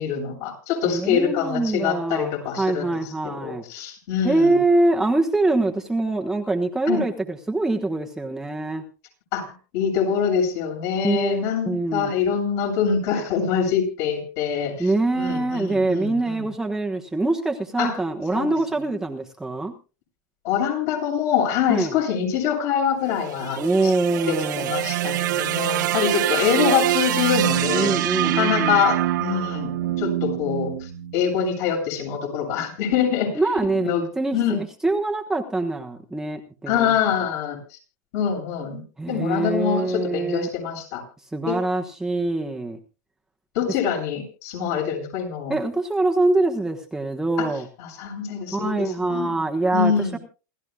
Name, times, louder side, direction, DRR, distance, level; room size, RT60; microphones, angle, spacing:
voice 1, 0.0-3.0 3.4-4.6 6.9-7.0 9.3-9.5 9.7-16.5 17.8-17.9 18.3-18.5 20.4-23.9 24.2-33.3 33.7-34.1 34.3-34.6 36.7-37.8 38.1-38.8 39.1-41.0 41.5-41.6 43.5-45.5 47.4-47.5 47.8-49.4 49.7-50.2, left 7 dB, 55° left, 1 dB, 7.8 m, -25 dB
voice 2, 0.8-3.6 4.2-8.8 11.0-12.1 14.8-19.7 21.7-22.0 23.6-24.7 27.7-28.9 33.3-37.0 39.0-40.5 41.3-42.8 45.5-47.7 48.5-50.2, right 2 dB, 5° right, 1 dB, 1.2 m, -24 dB
sound 1, 23.1-31.4, right 14 dB, 75° right, 1.3 m, -25 dB
28.0 x 13.5 x 2.4 m, 0.34 s
supercardioid pair, 140°, 10 cm